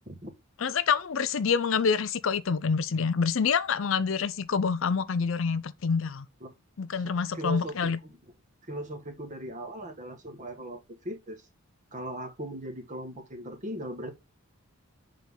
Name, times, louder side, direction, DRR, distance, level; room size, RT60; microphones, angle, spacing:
voice 1, 0.6-6.3 6.8-8.0, left 5 dB, 60° left, 0.5 m, -27 dB
voice 2, 7.0-8.2 8.7-11.4 11.9-14.1, right 1 dB, 35° right, 1.6 m, -38 dB
7.3 x 3.7 x 5.4 m
head